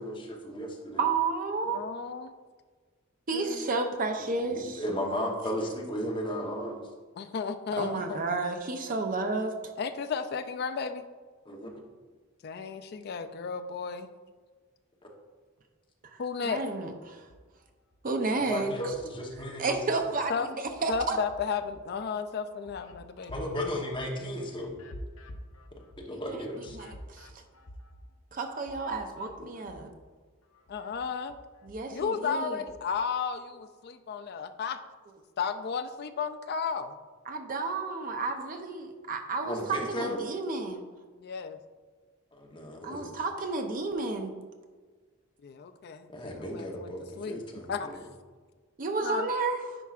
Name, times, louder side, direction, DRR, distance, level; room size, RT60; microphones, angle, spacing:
voice 1, 0.0-1.1 4.5-6.8 11.5-11.7 18.4-19.7 23.3-24.8 26.0-26.8 29.6-29.9 39.5-40.2 42.3-43.2 46.1-48.0, equal, 25° left, 0 dB, 0.9 m, -35 dB
voice 2, 1.0-1.8 3.3-4.8 7.8-9.6 16.0-17.3 18.0-18.7 19.6-21.2 26.1-27.4 28.3-29.9 31.6-32.6 37.3-40.8 42.8-44.4 48.8-49.8, right 3 dB, 40° right, 5 dB, 0.6 m, -32 dB
voice 3, 1.7-2.3 3.3-3.9 7.2-8.2 9.8-11.0 12.4-14.1 16.2-16.6 20.3-20.5 20.9-23.3 30.7-31.3 31.9-34.8 35.4-37.0 41.2-41.6 45.4-46.9 47.2-47.4 47.7-47.9 49.0-49.3, left 6 dB, 50° left, 9 dB, 0.4 m, -33 dB
sound 1, 17.2-18.0 18.4-20.0 20.4-30.1 30.4-33.0, equal, 85° left, 0.7 m, -50 dB
9.9 x 4.6 x 2.4 m, 1.4 s
head